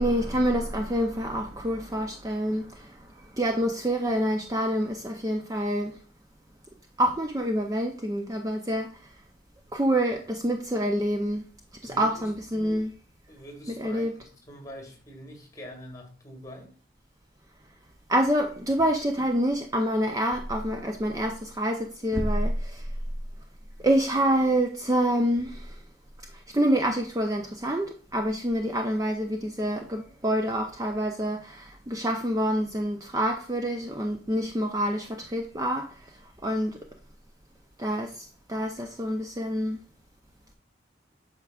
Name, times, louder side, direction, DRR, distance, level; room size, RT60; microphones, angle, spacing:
voice 1, 0.0-6.0 7.0-9.1 9.7-11.4 11.8-12.9 13.8-14.1 18.1-22.9 23.8-25.8 26.3-36.2 36.4-36.8 37.8-39.8, equal, 20° right, 0.5 m, -27 dB
voice 2, 11.9-12.9 13.3-16.8, equal, 20° left, 1.8 m, -44 dB
8.2 x 5.8 x 2.3 m
head